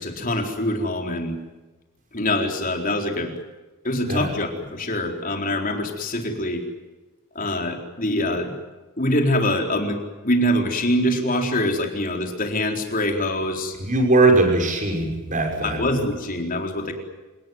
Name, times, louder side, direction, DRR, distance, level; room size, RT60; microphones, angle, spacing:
voice 1, 0.0-1.4 2.1-3.3 3.8-6.6 7.3-8.5 9.0-13.8 15.6-16.9, left 1 dB, 40° left, 3 dB, 4.2 m, -24 dB
voice 2, 13.8-15.8, right 2 dB, 35° right, 4 dB, 6.1 m, -20 dB
28.0 x 19.0 x 9.3 m, 1.2 s
head